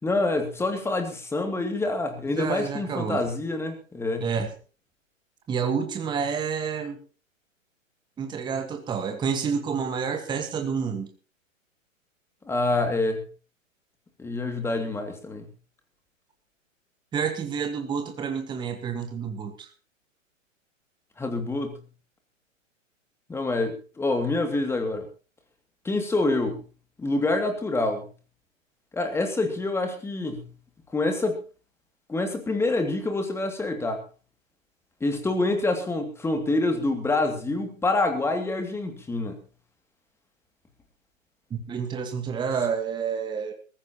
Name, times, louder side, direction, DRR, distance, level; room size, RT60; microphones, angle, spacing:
voice 1, 0.0-4.3 12.5-13.2 14.2-15.5 21.2-21.8 23.3-25.1 25.8-26.6 27.0-28.1 28.9-30.5 30.9-31.4 32.1-34.0 35.0-39.4, left 2 dB, 5° left, 6 dB, 2.4 m, -26 dB
voice 2, 2.3-3.2 4.2-4.5 5.5-7.0 8.2-11.1 17.1-19.7 41.5-43.5, right 6 dB, 10° right, 6 dB, 1.5 m, -29 dB
22.0 x 15.0 x 2.9 m, 0.36 s
figure-of-eight pair, 125°, 40 cm